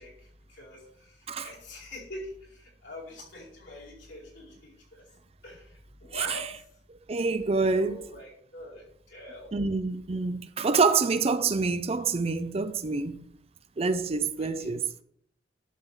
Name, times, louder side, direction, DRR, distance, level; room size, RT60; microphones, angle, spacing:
voice 1, 0.0-5.0 5.4-6.5 7.7-9.6 11.4-11.5 14.4-14.7, left 1 dB, 75° left, 4.7 m, -44 dB
voice 2, 6.1-6.4 7.1-8.1 9.5-13.2 13.8-14.8, right 4 dB, 30° right, 0.5 m, -27 dB
11.0 x 3.8 x 7.0 m
head